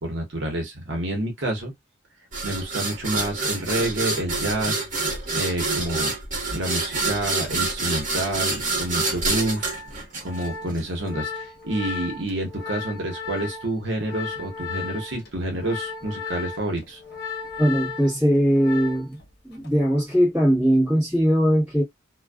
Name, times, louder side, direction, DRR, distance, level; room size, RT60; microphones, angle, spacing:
voice 1, 0.0-1.7 2.4-4.9 5.3-6.1 6.5-9.7 10.2-17.0, right 1 dB, 65° right, 0.9 m, -28 dB
sound 1, 2.3-10.8, right 3 dB, 40° right, 1.0 m, -27 dB
Organ, 9.2-19.2 19.5-19.8, left 6 dB, 50° left, 0.9 m, -35 dB
voice 2, 17.6-19.2 19.4-21.8, equal, 5° right, 1.1 m, -20 dB
2.5 x 2.2 x 2.2 m
head